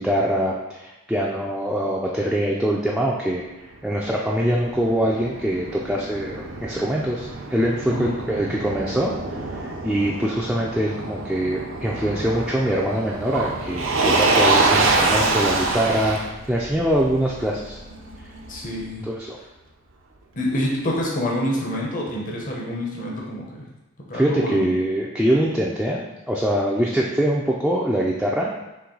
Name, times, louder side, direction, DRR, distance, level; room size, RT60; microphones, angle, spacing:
voice 1, 0.0-3.4 3.8-16.2 16.5-17.8 19.0-19.4 24.1-28.5, equal, 5° right, -4 dB, 0.4 m, -23 dB
Motor vehicle (road), 3.7-18.8, right 3 dB, 80° right, 0.6 m, -26 dB
voice 2, 18.5-19.0 20.4-23.5 24.1-24.7, left 1 dB, 40° left, -3 dB, 0.8 m, -26 dB
4.5 x 3.1 x 3.8 m, 1.0 s
head